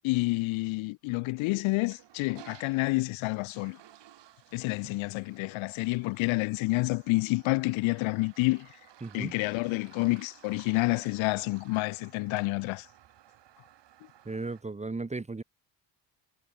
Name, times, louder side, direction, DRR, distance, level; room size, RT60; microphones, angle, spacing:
voice 1, 0.0-3.8 4.5-8.7 9.1-12.9, left 23 dB, 80° left, 0.6 m, -29 dB
Toilet flush, 1.7-14.6, right 12 dB, 65° right, 6.8 m, -56 dB
voice 2, 9.0-9.3 14.3-15.4, right 3 dB, 15° right, 1.6 m, -35 dB
cardioid pair, 115°, 47 cm